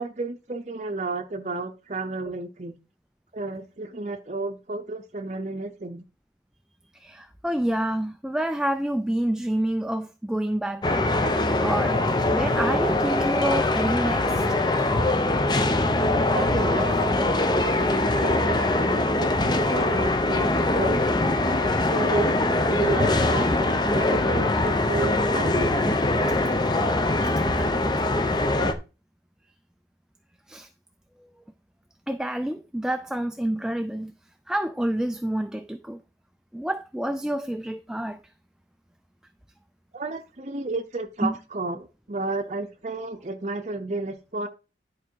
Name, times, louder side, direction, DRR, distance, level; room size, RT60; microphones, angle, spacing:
voice 1, 0.0-2.8 3.3-6.0 16.3-21.0 21.6-22.4 22.7-25.8 39.9-44.5, right 2 dB, 40° right, 0.7 m, -32 dB
voice 2, 7.0-11.1 11.6-12.0 12.3-14.4 30.5-30.7 32.1-34.1 34.5-36.0 36.5-38.2 41.2-41.4, right 1 dB, 5° right, 0.4 m, -28 dB
sound 1, 10.8-28.7, left 2 dB, 25° left, 0.8 m, -22 dB
10.5 x 4.8 x 4.6 m
head